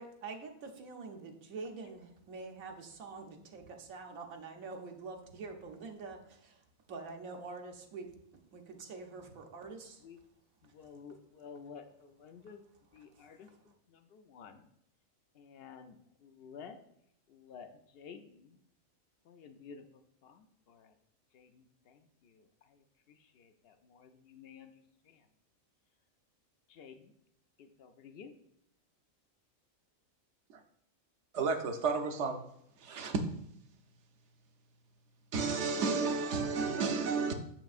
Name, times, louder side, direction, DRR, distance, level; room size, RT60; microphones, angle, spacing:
voice 1, 0.0-6.6 6.9-8.1 8.5-10.0 13.1-13.3, right 4 dB, 80° right, 1.3 m, -46 dB
voice 2, 10.6-12.6 12.9-14.7 15.3-16.8 17.3-18.6 19.2-21.0 21.3-25.3 26.7-27.1 27.6-28.3, left 6 dB, 65° left, 0.6 m, -53 dB
voice 3, 31.3-32.4 32.8-33.2 35.3-37.3, right 4 dB, 65° right, 0.9 m, -32 dB
6.9 x 5.9 x 2.4 m
omnidirectional pair, 1.4 m